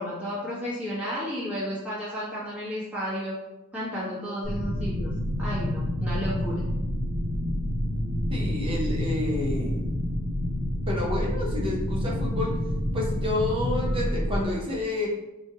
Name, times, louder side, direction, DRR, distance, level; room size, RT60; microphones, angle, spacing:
voice 1, 0.0-3.3 3.7-5.1 5.4-6.6, equal, 5° right, -8 dB, 1.1 m, -32 dB
sound 1, 4.4-14.4, left 1 dB, 70° right, 0.9 m, -28 dB
voice 2, 8.3-9.8 10.9-12.5 12.9-15.1, left 2 dB, 25° right, -2 dB, 0.7 m, -29 dB
4.4 x 2.4 x 2.8 m, 0.98 s
head